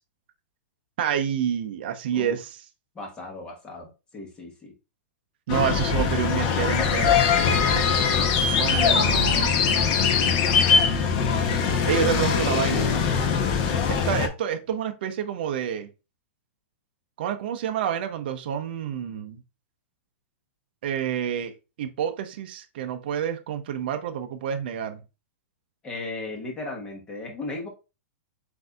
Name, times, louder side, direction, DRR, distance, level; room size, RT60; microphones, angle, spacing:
voice 1, 1.0-2.6 5.5-7.3 7.7-8.0 8.6-10.1 11.8-12.9 13.9-15.9 17.2-19.4 20.8-21.5 21.8-25.0, right 9 dB, 45° right, 0.6 m, -28 dB
voice 2, 2.9-4.7 5.7-6.0 12.0-13.0 25.8-27.7, left 2 dB, 10° left, 1.0 m, -36 dB
sound 1, 5.5-14.3, left 6 dB, 30° left, 0.7 m, -22 dB
7.8 x 2.6 x 2.3 m
hypercardioid pair, 170°, 7 cm